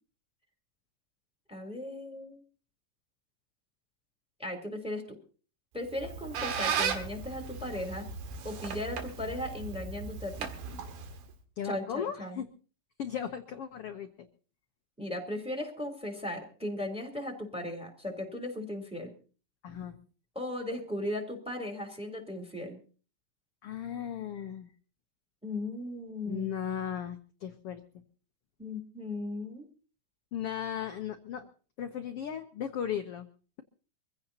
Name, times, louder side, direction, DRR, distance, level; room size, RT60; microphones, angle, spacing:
voice 1, 1.5-2.4 4.4-5.2 5.7-8.1 8.4-10.5 11.6-12.4 15.0-19.1 20.3-22.8 25.4-26.5 28.6-29.7, left 1 dB, ahead, 4 dB, 3.2 m, -37 dB
Squeak, 5.8-11.3, right 6 dB, 90° right, 3.6 m, -36 dB
voice 2, 11.6-12.5 13.0-14.1 19.6-19.9 23.6-24.7 26.3-27.8 30.3-31.5 31.8-33.3, left 8 dB, 90° left, 7 dB, 1.2 m, -36 dB
25.0 x 16.0 x 2.8 m, 0.38 s
omnidirectional pair, 4.1 m